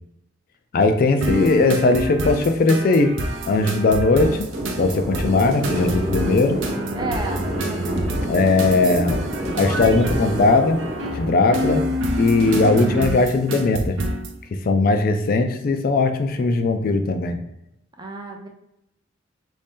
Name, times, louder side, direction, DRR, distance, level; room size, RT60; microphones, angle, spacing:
voice 1, 0.7-3.1 3.5-4.5 4.8-6.6 8.3-9.2 9.6-10.8 11.1-11.8 12.2-14.0 14.5-17.4, left 3 dB, 50° left, 7 dB, 0.3 m, -19 dB
sound 1, 1.2-14.3, equal, 90° right, 0.6 m, -27 dB
sound 2, 4.2-12.5, equal, 45° right, 1.0 m, -29 dB
voice 2, 7.0-8.4 18.0-18.5, right 2 dB, 20° right, 3 dB, 0.5 m, -33 dB
3.1 x 2.7 x 3.5 m, 0.84 s
head